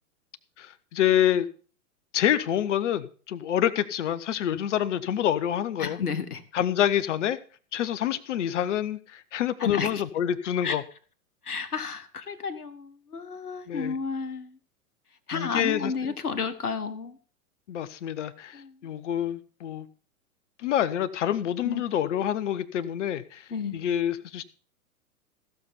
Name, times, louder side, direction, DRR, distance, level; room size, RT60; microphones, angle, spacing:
voice 1, 0.6-1.5 2.1-6.0 6.5-7.4 7.7-10.8 13.7-14.0 15.3-16.1 17.7-19.9 20.6-24.4, left 10 dB, 50° left, 16 dB, 1.0 m, -27 dB
voice 2, 5.8-6.4 9.6-10.0 10.6-10.8 11.4-14.6 15.3-17.2 18.5-18.8 21.6-21.8 23.5-23.8, left 5 dB, 80° left, 11 dB, 1.4 m, -32 dB
15.5 x 6.9 x 5.3 m, 0.40 s
figure-of-eight pair, 105°, 45 cm